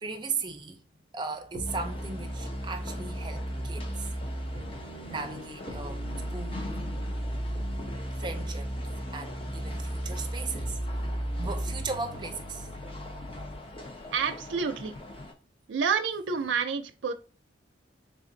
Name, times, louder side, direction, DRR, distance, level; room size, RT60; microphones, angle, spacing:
voice 1, 0.0-0.8 1.1-4.1 5.1-6.7 8.2-8.7 9.1-10.7 11.4-12.7, right 4 dB, 25° right, 0.5 m, -37 dB
sound 1, 1.5-13.6, right 1 dB, 70° left, 1.5 m, -35 dB
sound 2, 1.7-15.3, left 2 dB, 30° left, 0.6 m, -44 dB
voice 2, 14.1-14.9 15.7-17.1, right 6 dB, 85° right, 0.4 m, -29 dB
3.6 x 2.5 x 3.8 m
head